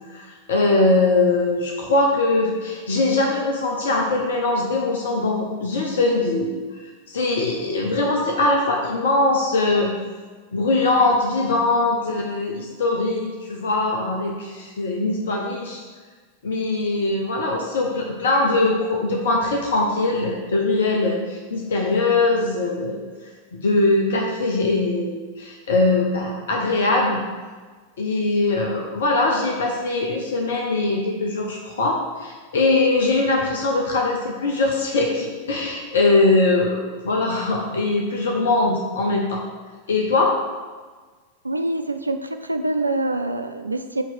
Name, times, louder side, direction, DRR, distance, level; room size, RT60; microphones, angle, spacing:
voice 1, 0.1-6.5 7.1-9.9 10.5-15.8 16.4-23.0 23.5-27.2 28.0-39.4 39.9-40.3, left 2 dB, 60° left, 0 dB, 0.9 m, -21 dB
voice 2, 41.4-44.0, right 2 dB, 80° right, 8 dB, 0.4 m, -25 dB
9.1 x 3.1 x 6.0 m, 1.4 s
figure-of-eight pair, 90°, 0 cm